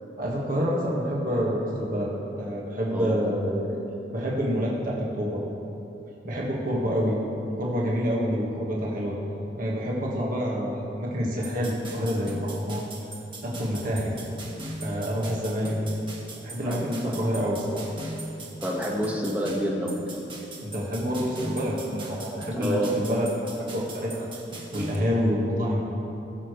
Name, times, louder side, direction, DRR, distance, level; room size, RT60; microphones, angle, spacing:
voice 1, 0.2-2.1 2.4-3.8 4.1-5.4 6.2-7.2 7.5-9.2 9.6-12.8 13.4-14.1 14.8-15.7 16.4-17.8 20.6-23.5 23.7-24.3 24.7-25.8, equal, 50° right, -4 dB, 1.6 m, -27 dB
voice 2, 2.9-3.3 16.6-17.2 18.6-20.0 22.5-23.0, equal, 10° right, -2 dB, 1.4 m, -28 dB
sound 1, 11.4-24.9, right 2 dB, 30° right, 1.3 m, -40 dB
20.0 x 6.8 x 3.2 m, 2.9 s
head